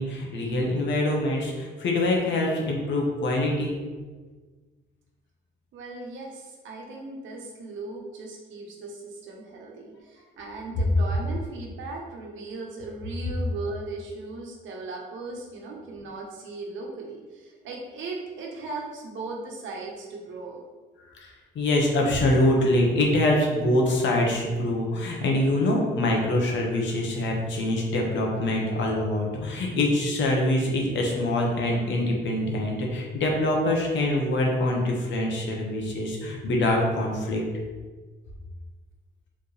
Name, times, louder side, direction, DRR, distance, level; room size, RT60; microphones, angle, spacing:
voice 1, 0.0-3.8 21.1-37.4, left 1 dB, 70° left, -1 dB, 1.1 m, -24 dB
voice 2, 5.7-20.6, right 3 dB, 75° right, -1 dB, 1.0 m, -38 dB
4.6 x 3.5 x 3.3 m, 1.4 s
cardioid pair, 90°, 20 cm